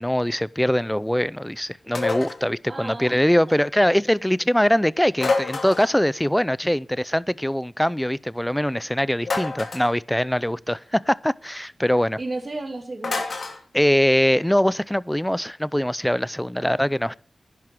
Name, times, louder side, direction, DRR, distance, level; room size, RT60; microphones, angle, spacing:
voice 1, 0.0-12.2 13.7-17.2, equal, 5° left, 0.5 m, -22 dB
sound 1, 1.9-2.4 5.2-6.0 9.2-9.9 13.0-13.6, left 3 dB, 65° left, 2.9 m, -27 dB
voice 2, 2.7-3.2 12.2-13.3 16.6-17.0, right 2 dB, 40° right, 2.3 m, -34 dB
11.0 x 11.0 x 5.9 m
wide cardioid pair, 70°, 0 cm